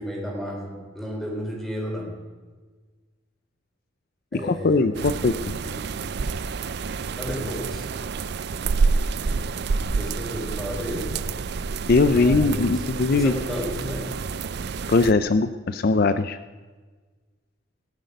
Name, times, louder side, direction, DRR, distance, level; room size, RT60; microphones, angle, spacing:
voice 1, 0.0-2.2 4.3-6.3 7.2-7.8 9.9-11.2 12.1-12.8 13.1-14.1, equal, ahead, -2 dB, 3.9 m, -33 dB
voice 2, 4.3-5.5 11.9-13.3 14.9-16.4, left 3 dB, 50° left, 12 dB, 0.5 m, -20 dB
sound 1, 4.9-15.1, right 4 dB, 55° right, 0.4 m, -28 dB
18.5 x 10.5 x 5.3 m, 1.4 s
head